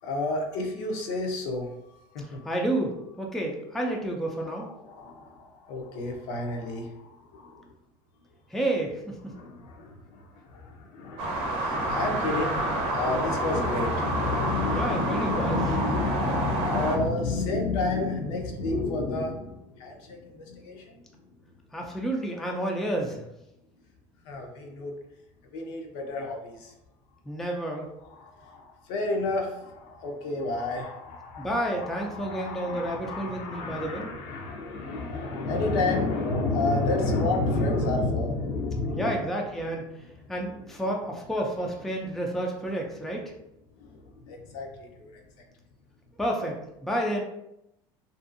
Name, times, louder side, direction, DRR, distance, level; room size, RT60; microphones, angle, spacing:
voice 1, 0.0-2.5 4.6-7.7 9.3-21.0 24.2-24.9 25.5-26.7 28.1-39.2 43.8-45.2, left 2 dB, 70° left, 1 dB, 0.6 m, -30 dB
voice 2, 2.4-4.7 8.5-9.2 14.7-15.6 21.7-23.2 27.3-27.9 31.4-34.1 38.9-39.9 40.3-43.3 46.2-47.2, right 1 dB, 5° left, 0 dB, 0.3 m, -30 dB
sound 1, 11.2-17.0, right 2 dB, 60° right, 0.6 m, -29 dB
2.6 x 2.3 x 2.5 m, 0.84 s
cardioid pair, 135°, 11 cm